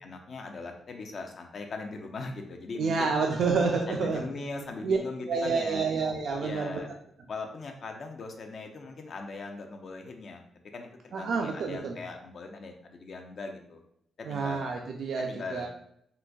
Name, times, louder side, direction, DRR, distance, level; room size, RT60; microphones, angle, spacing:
voice 1, 0.0-3.1 3.9-5.9 6.4-6.9 7.3-13.8 14.2-14.6 15.2-15.7, left 3 dB, 50° left, 4 dB, 0.4 m, -40 dB
voice 2, 2.7-4.2 4.8-5.0 5.3-6.8 11.1-12.0 14.2-15.7, right 4 dB, 65° right, 1 dB, 0.3 m, -28 dB
3.9 x 2.5 x 2.3 m, 0.70 s
cardioid pair, 125°, 0 cm